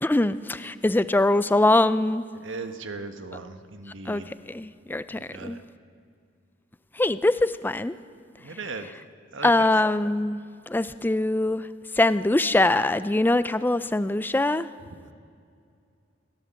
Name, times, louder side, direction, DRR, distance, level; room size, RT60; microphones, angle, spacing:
voice 1, 0.0-2.2 4.1-5.6 7.0-7.9 9.4-11.7 11.9-14.7, left 2 dB, 10° left, 14 dB, 0.4 m, -23 dB
voice 2, 2.4-4.3 5.1-5.6 8.4-8.9 9.3-9.7, right 3 dB, 90° right, 8 dB, 1.3 m, -37 dB
22.5 x 15.5 x 7.6 m, 2.4 s
head